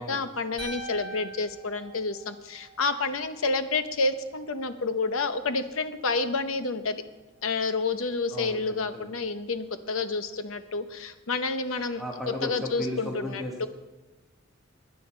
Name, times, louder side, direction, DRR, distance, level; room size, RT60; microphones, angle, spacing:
voice 1, 0.0-7.0 7.4-13.7, left 3 dB, 90° left, 10 dB, 0.8 m, -29 dB
sound 1, 0.6-2.8, right 3 dB, 30° right, 2.5 m, -41 dB
voice 2, 8.3-8.6 8.9-9.1 12.0-13.7, left 1 dB, ahead, -2 dB, 1.2 m, -35 dB
16.0 x 10.0 x 4.5 m, 1.1 s
head